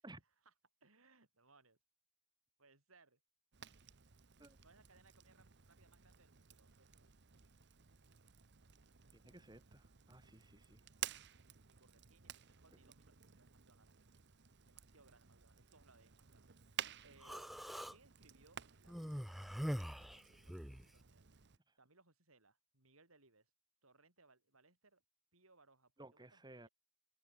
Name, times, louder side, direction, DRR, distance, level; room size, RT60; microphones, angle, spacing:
voice 1, 0.2-0.5 0.8-1.8 2.6-3.2 4.6-7.1 10.6-13.9 14.6-16.5 17.0-17.5 17.9-19.5 19.8-21.3 21.8-23.5 23.8-25.0 25.3-26.7, right 3 dB, 90° right, 8.0 m, -70 dB
Fire, 3.5-21.6, right 10 dB, 55° right, 1.1 m, -54 dB
voice 2, 9.1-10.8 26.0-26.7, right 2 dB, 20° right, 2.8 m, -57 dB
Human voice, 17.2-18.0 18.9-20.9, equal, ahead, 0.5 m, -43 dB
head